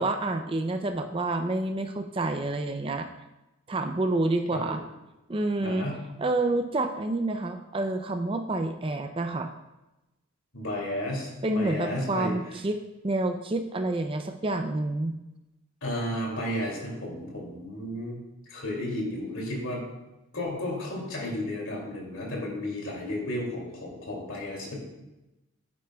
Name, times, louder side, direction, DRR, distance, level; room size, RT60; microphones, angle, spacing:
voice 1, 0.0-3.1 3.7-4.8 5.3-5.9 6.2-9.5 11.4-12.8 13.0-15.1, right 2 dB, 25° right, 7 dB, 0.4 m, -28 dB
voice 2, 5.6-6.1 10.5-12.3 15.8-18.2 18.5-19.8 20.3-24.8, left 1 dB, 65° left, -2 dB, 2.6 m, -33 dB
11.0 x 8.3 x 2.3 m, 0.98 s
head